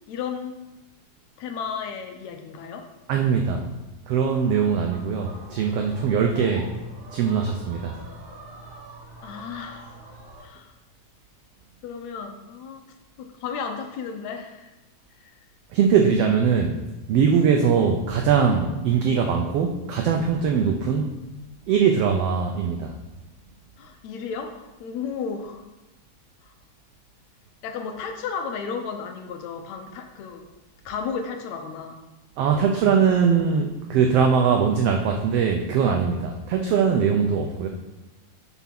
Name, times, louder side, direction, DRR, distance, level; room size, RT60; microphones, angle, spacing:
voice 1, 0.1-0.6 1.4-2.9 9.2-10.0 10.4-10.7 11.8-12.8 13.2-14.7 15.1-15.3 23.8-25.6 26.4-26.5 27.6-30.5 30.9-32.0, left 6 dB, 75° left, 5 dB, 1.8 m, -33 dB
voice 2, 3.1-3.7 4.1-6.7 7.1-7.9 15.7-16.8 17.1-21.2 21.7-22.9 32.4-37.7, right 6 dB, 85° right, 3 dB, 1.3 m, -21 dB
sound 1, 4.3-10.4, right 2 dB, 45° right, 3.4 m, -42 dB
8.1 x 4.6 x 5.8 m, 1.0 s
omnidirectional pair, 3.6 m